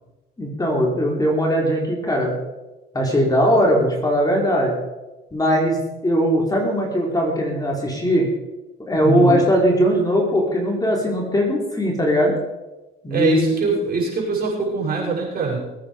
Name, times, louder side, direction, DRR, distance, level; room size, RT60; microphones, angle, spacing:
voice 1, 0.4-2.4 2.9-4.7 5.3-5.8 6.0-8.3 8.9-12.4 13.0-13.8, equal, 15° left, -1 dB, 3.7 m, -19 dB
voice 2, 9.0-9.4 13.1-15.7, right 4 dB, 45° right, -3 dB, 6.8 m, -23 dB
21.0 x 8.9 x 5.1 m, 1.1 s
cardioid pair, 110°, 21 cm